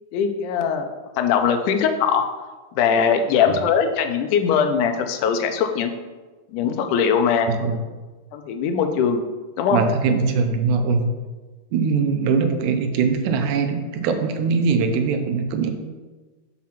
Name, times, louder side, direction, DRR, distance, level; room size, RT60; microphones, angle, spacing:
voice 1, 0.1-0.9 1.2-2.2 2.7-5.9 6.5-7.6 8.3-9.2 9.6-9.8, left 7 dB, 80° left, 6 dB, 2.0 m, -21 dB
voice 2, 9.7-11.1 11.7-15.7, right 5 dB, 80° right, 6 dB, 1.8 m, -21 dB
6.0 x 4.7 x 5.7 m, 1.3 s
omnidirectional pair, 4.0 m